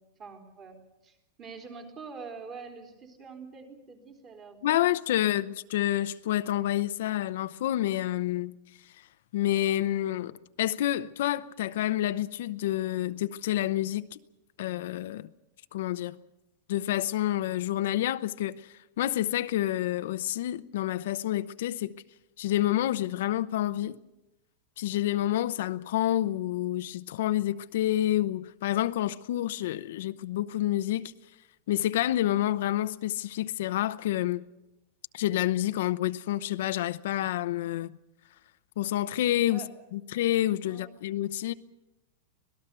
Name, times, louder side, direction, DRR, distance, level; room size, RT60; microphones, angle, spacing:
voice 1, 0.0-5.3 39.5-39.7 40.7-41.0, right 5 dB, 25° right, 3.7 m, -46 dB
voice 2, 4.6-8.6 9.3-14.2 14.6-15.3 15.7-16.2 16.7-21.9 22.4-24.0 24.8-31.1 31.7-34.4 35.1-38.0 38.8-39.6 39.9-41.5, left 13 dB, 65° left, 0.7 m, -28 dB
25.5 x 18.5 x 6.8 m
supercardioid pair, 160°, 0 cm